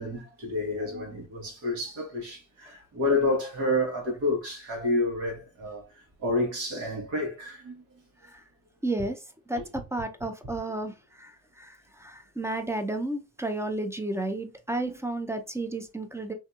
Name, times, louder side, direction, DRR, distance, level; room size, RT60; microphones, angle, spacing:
voice 1, 0.0-7.8 14.8-14.9, left 2 dB, 80° right, 1.3 m, -29 dB
voice 2, 8.8-9.2 9.5-16.3, right 2 dB, 10° right, 0.4 m, -32 dB
2.7 x 2.6 x 2.3 m
cardioid pair, 90°, 30 cm